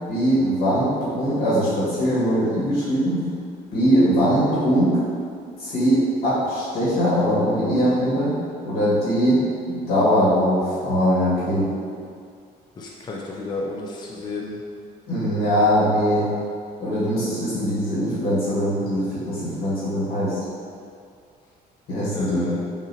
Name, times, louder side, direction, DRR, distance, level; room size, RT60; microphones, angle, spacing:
voice 1, 0.1-3.2 3.7-5.0 5.6-8.4 8.6-9.4 9.7-11.7 15.1-16.3 16.8-20.4 21.9-22.5, equal, 70° left, -9 dB, 1.5 m, -21 dB
voice 2, 12.8-14.6 22.1-22.6, left 2 dB, 25° left, -2 dB, 0.5 m, -32 dB
5.4 x 2.7 x 2.7 m, 2.2 s
cardioid pair, 110°, 17 cm